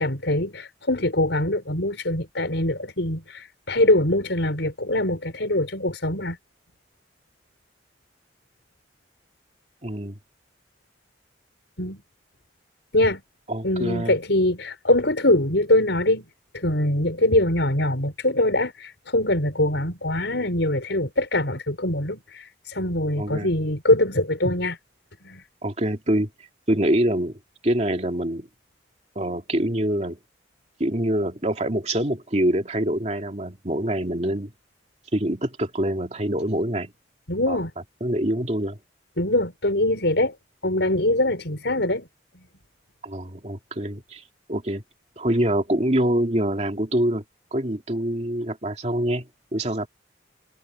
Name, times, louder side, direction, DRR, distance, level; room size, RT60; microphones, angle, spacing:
voice 1, 0.0-6.4 11.8-12.0 12.9-13.2 13.6-16.2 16.5-24.8 25.2-25.4 37.3-37.7 39.2-40.3 40.6-42.1, left 1 dB, 75° left, 5.8 m, -23 dB
voice 2, 9.8-10.2 13.5-14.2 23.2-23.5 25.6-26.3 26.7-28.5 29.2-30.2 30.8-34.5 35.1-36.9 37.5-37.6 38.0-38.8 43.0-44.2 44.5-44.8 45.2-47.2 47.5-49.9, right 1 dB, 35° right, 2.6 m, -25 dB
head